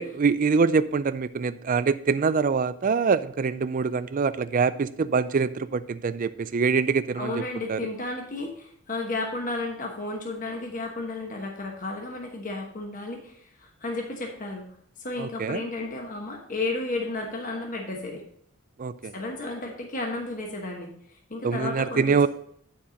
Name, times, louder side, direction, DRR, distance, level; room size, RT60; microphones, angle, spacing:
voice 1, 0.0-7.4 7.7-7.8 15.2-15.6 18.8-19.1 21.4-22.3, right 5 dB, 40° right, 14 dB, 0.4 m, -24 dB
voice 2, 7.1-14.7 15.0-18.2 19.1-20.9 21.3-22.3, left 2 dB, 40° left, 1 dB, 1.1 m, -33 dB
9.8 x 4.3 x 5.1 m, 0.65 s
head